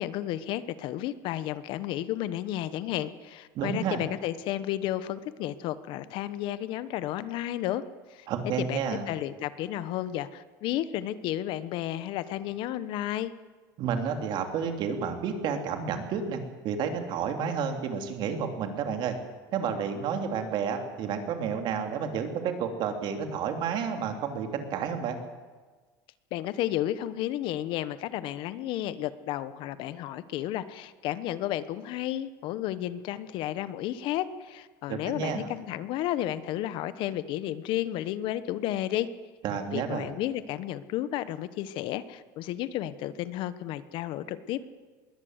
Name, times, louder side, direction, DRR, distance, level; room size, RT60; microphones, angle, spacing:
voice 1, 0.0-7.8 8.1-8.3 8.6-13.3 26.3-39.1 39.7-44.6, left 13 dB, 60° left, 14 dB, 1.1 m, -32 dB
voice 2, 3.5-4.0 8.3-9.1 13.8-19.2 19.5-25.2 34.9-35.5 39.4-40.1, right 6 dB, 50° right, 5 dB, 3.2 m, -31 dB
21.5 x 17.0 x 8.1 m, 1.4 s
supercardioid pair, 125°, 10 cm